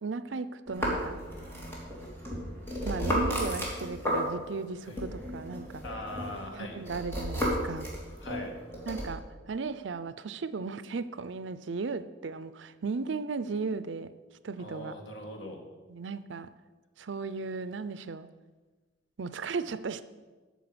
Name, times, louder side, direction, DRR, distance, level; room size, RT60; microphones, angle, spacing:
voice 1, 0.0-1.2 2.8-5.8 6.5-7.9 8.9-14.1 14.4-14.9 15.9-16.5 17.0-18.3 19.2-20.0, right 4 dB, 75° right, 14 dB, 0.5 m, -36 dB
sound 1, 0.7-4.6 5.0-9.1, equal, 10° left, 2.8 m, -33 dB
voice 2, 5.8-6.8 8.2-8.5 14.6-15.6, left 1 dB, 70° left, 3 dB, 1.9 m, -40 dB
9.2 x 6.7 x 7.8 m, 1.3 s
head